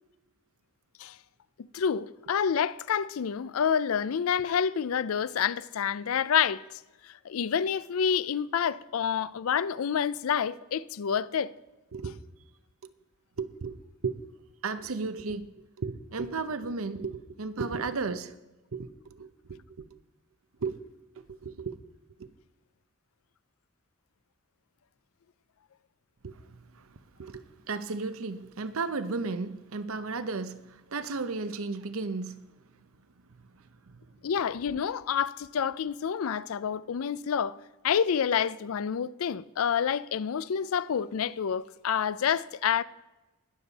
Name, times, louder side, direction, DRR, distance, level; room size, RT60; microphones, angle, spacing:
voice 1, 1.6-11.5 34.2-37.6 37.8-42.8, left 7 dB, 80° left, 0.4 m, -28 dB
voice 2, 13.4-14.2 14.6-15.5 15.8-18.3 18.7-19.9 20.6-20.8 21.3-21.8 22.2-22.3 26.2-32.5 33.4-33.5 33.9-34.1, right 4 dB, 80° right, 0.7 m, -35 dB
21.0 x 7.1 x 4.1 m
head